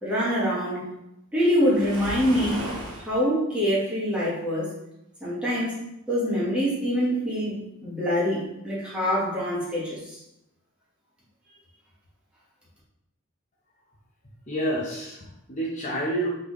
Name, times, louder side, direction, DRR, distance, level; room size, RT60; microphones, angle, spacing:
voice 1, 0.0-0.8 1.3-2.7 3.0-4.7 5.2-5.8 6.1-10.2, equal, 5° right, -9 dB, 1.3 m, -25 dB
Waves surf, 1.6-3.1, right 1 dB, 85° right, 1.0 m, -34 dB
voice 2, 14.5-16.3, right 1 dB, 35° left, -4 dB, 0.7 m, -29 dB
4.1 x 3.3 x 3.1 m, 0.86 s
head